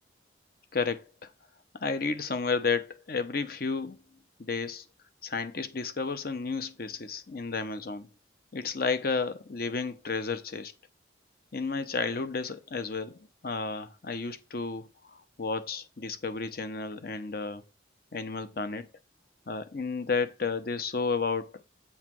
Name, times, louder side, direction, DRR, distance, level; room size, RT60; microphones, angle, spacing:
voice 1, 0.7-1.0 1.8-4.0 4.4-4.8 5.2-8.1 8.5-10.7 11.5-14.9 15.4-17.6 18.1-18.9 19.5-21.5, left 4 dB, 50° left, 0.7 m, -32 dB
8.5 x 3.1 x 6.1 m
head